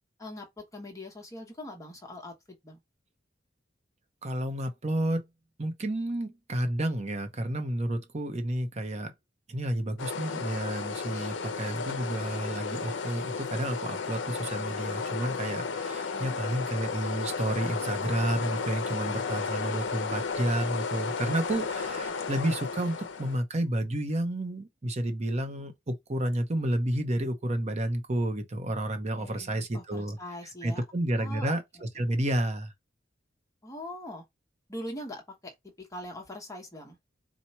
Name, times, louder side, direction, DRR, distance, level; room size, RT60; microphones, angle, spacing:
voice 1, 0.2-2.3 2.6-2.8 16.1-16.4 28.9-30.8 31.2-31.6 33.6-34.2 34.7-37.0, left 1 dB, 15° left, 1.0 m, -42 dB
voice 2, 4.2-5.2 5.6-9.1 9.5-30.2 30.6-32.7, right 1 dB, 35° right, 0.7 m, -31 dB
sound 1, 10.0-23.4, left 5 dB, 70° left, 0.6 m, -33 dB
4.5 x 2.2 x 4.1 m
head